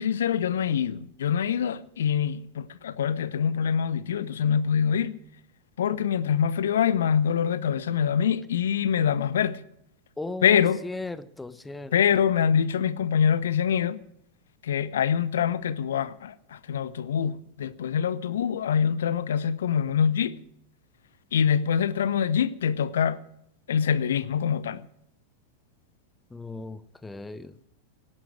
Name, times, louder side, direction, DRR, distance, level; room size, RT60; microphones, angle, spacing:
voice 1, 0.0-5.1 5.8-9.6 10.4-10.8 11.9-14.0 14.6-20.4 21.3-23.2 23.7-24.8, left 8 dB, 60° left, 0.7 m, -25 dB
voice 2, 10.2-12.0 26.3-27.7, left 2 dB, 10° left, 0.9 m, -37 dB
17.5 x 11.0 x 6.3 m
figure-of-eight pair, 90°, 0 cm